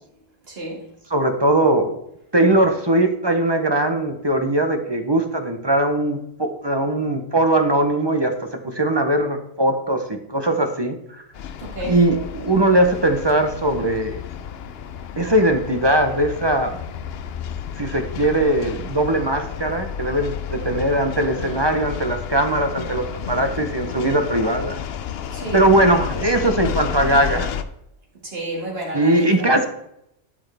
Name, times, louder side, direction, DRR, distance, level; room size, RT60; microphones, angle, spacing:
voice 1, 0.5-0.9 2.5-2.6 11.6-12.0 20.6-20.8 25.3-25.6 28.2-29.6, right 1 dB, 55° right, 2.6 m, -31 dB
voice 2, 1.1-1.9 2.3-11.0 11.8-14.2 15.2-16.7 17.8-24.8 25.5-27.5 28.9-29.7, right 1 dB, 25° right, 0.8 m, -20 dB
sound 1, 11.3-27.6, left 8 dB, 65° left, 0.8 m, -31 dB
12.0 x 6.2 x 3.5 m
omnidirectional pair, 1.2 m